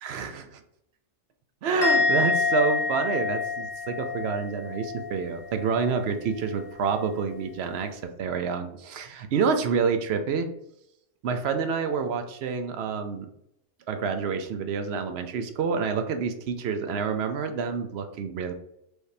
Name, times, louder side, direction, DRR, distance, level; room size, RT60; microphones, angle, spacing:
voice 1, 0.0-0.6 1.6-10.5 11.2-13.3 13.9-18.5, right 5 dB, 65° right, 7 dB, 0.7 m, -28 dB
Musical instrument, 1.8-5.2 5.5-5.9, left 4 dB, 55° left, 1.2 m, -27 dB
4.8 x 2.7 x 3.2 m, 0.78 s
omnidirectional pair, 1.4 m